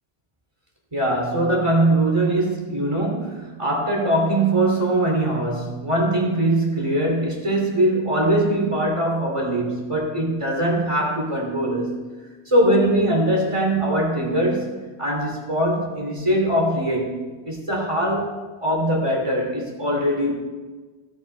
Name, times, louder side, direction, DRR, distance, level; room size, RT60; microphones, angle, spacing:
voice 1, 0.9-12.0 12.5-18.3 18.6-20.3, right 1 dB, 30° right, -2 dB, 2.9 m, -22 dB
17.0 x 6.2 x 4.5 m, 1.3 s
omnidirectional pair, 1.0 m